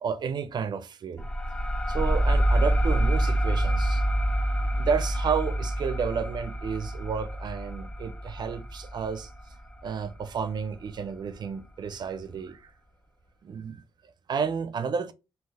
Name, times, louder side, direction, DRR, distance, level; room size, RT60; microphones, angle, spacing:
voice 1, 0.0-1.3 1.9-4.0 4.8-9.3 9.8-12.7 13.4-13.8 14.3-15.1, right 6 dB, 50° right, 0.4 m, -31 dB
sound 1, 1.2-10.4, right 1 dB, 10° left, 0.4 m, -27 dB
3.8 x 2.8 x 3.9 m
cardioid pair, 120°, 10 cm